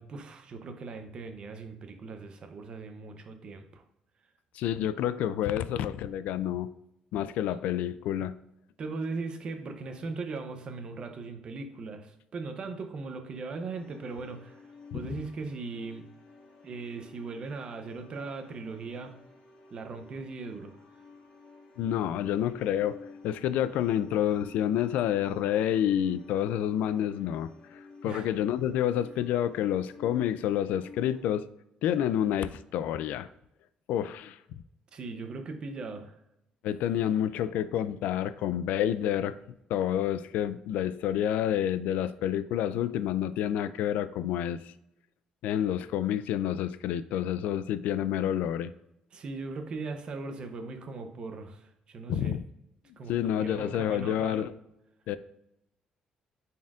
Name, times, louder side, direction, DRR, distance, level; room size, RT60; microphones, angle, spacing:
voice 1, 0.0-3.8 8.8-14.6 14.9-16.1 16.6-19.1 19.7-20.8 28.0-28.3 34.9-36.2 49.1-52.3 53.0-54.5, right 3 dB, 40° right, 6 dB, 0.7 m, -39 dB
voice 2, 4.5-6.7 7.1-8.4 14.9-15.0 21.8-23.0 23.2-31.5 31.8-33.3 33.9-34.4 36.6-39.4 39.7-44.7 45.4-48.7 52.1-52.4 53.1-54.5 55.1-55.2, left 10 dB, 85° left, 14 dB, 0.3 m, -29 dB
sound 1, 13.8-31.2, left 4 dB, 45° left, 1.5 m, -52 dB
9.3 x 4.3 x 2.5 m, 0.82 s
cardioid pair, 165°, 3 cm